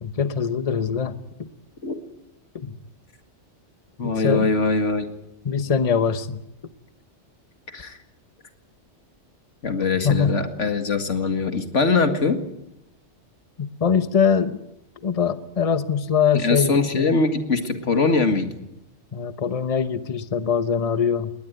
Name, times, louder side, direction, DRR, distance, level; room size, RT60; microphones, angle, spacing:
voice 1, 0.0-1.5 2.5-2.8 4.0-4.5 5.4-6.4 10.0-10.4 13.6-14.6 15.0-17.1 19.1-21.3, left 6 dB, 35° left, 12 dB, 1.0 m, -23 dB
voice 2, 4.0-5.1 7.7-8.0 9.6-12.4 16.3-18.5, left 4 dB, 90° left, 7 dB, 2.4 m, -22 dB
20.5 x 19.5 x 9.3 m, 0.83 s
omnidirectional pair, 1.2 m